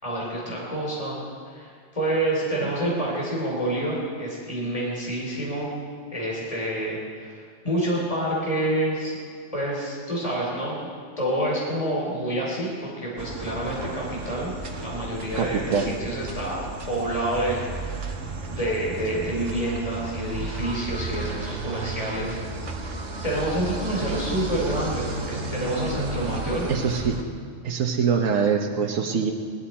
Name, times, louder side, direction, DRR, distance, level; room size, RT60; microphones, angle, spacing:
voice 1, 0.0-5.7 6.1-9.2 9.5-10.8 11.2-16.6 16.9-18.2 18.5-22.4 22.7-26.7, right 1 dB, 30° left, -4 dB, 3.2 m, -28 dB
sound 1, 13.2-27.2, right 3 dB, 70° right, 1.5 m, -33 dB
voice 2, 15.3-15.9 26.7-27.2 27.6-29.3, right 6 dB, 90° right, 3 dB, 1.3 m, -24 dB
19.5 x 12.0 x 4.3 m, 2.1 s
omnidirectional pair, 1.3 m